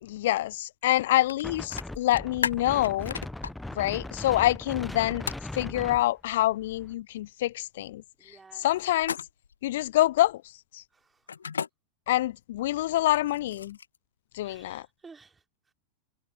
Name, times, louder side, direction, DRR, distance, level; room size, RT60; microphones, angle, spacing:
voice 1, 0.0-3.1 3.7-5.2 5.5-8.0 8.6-9.2 9.6-10.4 10.7-10.8 12.1-13.8 14.3-14.9, left 15 dB, 55° left, 1.1 m, -26 dB
sound 1, 1.3-1.4 1.7-3.5 5.3-5.5 9.0-9.5 11.3-11.7 13.0-14.0, left 6 dB, 70° left, 0.6 m, -33 dB
Wind, 1.4-6.9, left 1 dB, 5° left, 1.2 m, -39 dB
voice 2, 3.4-3.8 8.2-8.7 10.9-11.3 14.4-15.4, right 4 dB, 15° right, 4.0 m, -54 dB
figure-of-eight pair, 90°, 0 cm